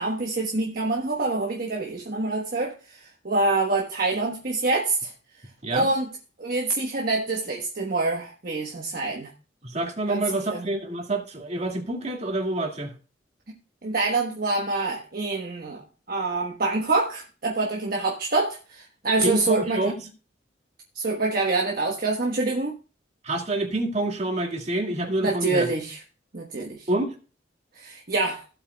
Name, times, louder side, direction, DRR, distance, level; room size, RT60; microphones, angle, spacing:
voice 1, 0.0-5.1 5.7-6.1 6.4-9.3 10.1-10.7 13.8-15.8 16.1-19.9 20.9-22.8 25.2-26.0 26.3-26.9 27.7-28.4, right 3 dB, 55° right, 1.2 m, -26 dB
voice 2, 9.6-12.9 19.2-19.9 23.2-25.7 26.9-27.2, right 2 dB, 40° right, 2.2 m, -27 dB
16.0 x 8.0 x 2.3 m
head